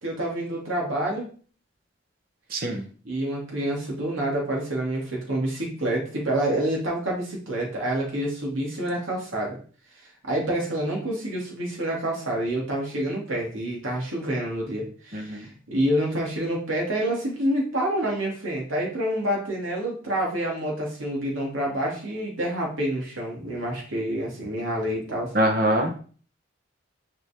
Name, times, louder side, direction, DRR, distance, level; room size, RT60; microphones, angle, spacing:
voice 1, 0.0-1.3 3.0-9.6 10.2-25.3, right 1 dB, 90° right, -2 dB, 2.8 m, -27 dB
voice 2, 2.5-2.8 15.1-15.5 25.3-25.9, right 1 dB, 45° right, 4 dB, 1.3 m, -23 dB
7.3 x 5.1 x 3.7 m, 0.41 s
head